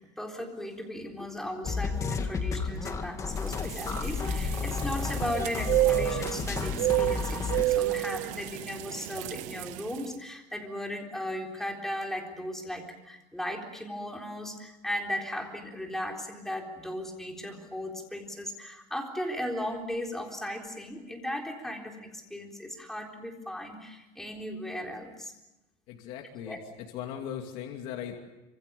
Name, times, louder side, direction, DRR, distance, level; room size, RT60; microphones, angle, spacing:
voice 1, 0.0-25.3 26.4-26.6, left 1 dB, 5° left, 1 dB, 3.9 m, -37 dB
sound 1, 1.6-7.6, left 5 dB, 20° left, 2.0 m, -32 dB
sound 2, 3.4-10.0, right 17 dB, 60° right, 0.8 m, -30 dB
voice 2, 25.9-28.2, left 9 dB, 65° left, 2 dB, 2.7 m, -39 dB
26.5 x 26.0 x 7.0 m, 1.0 s
cardioid pair, 155°, 14 cm